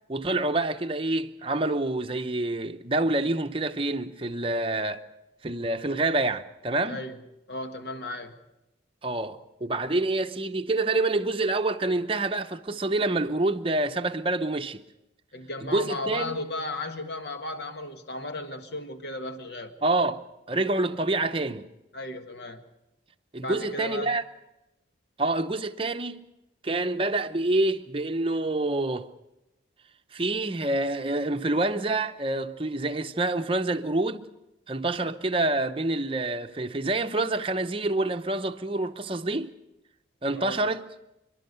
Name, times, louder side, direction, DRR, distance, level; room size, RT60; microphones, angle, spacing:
voice 1, 0.1-5.0 5.4-7.0 9.0-14.8 15.6-16.4 19.8-20.2 20.5-21.7 23.3-24.2 25.2-26.2 26.6-29.1 30.1-34.3 34.7-39.5 40.2-40.9, right 2 dB, 30° right, 0.8 m, -27 dB
voice 2, 7.5-8.3 15.3-19.7 21.9-22.6 23.4-24.1 40.3-40.6, left 2 dB, 55° left, 1.7 m, -35 dB
29.5 x 11.5 x 8.0 m
head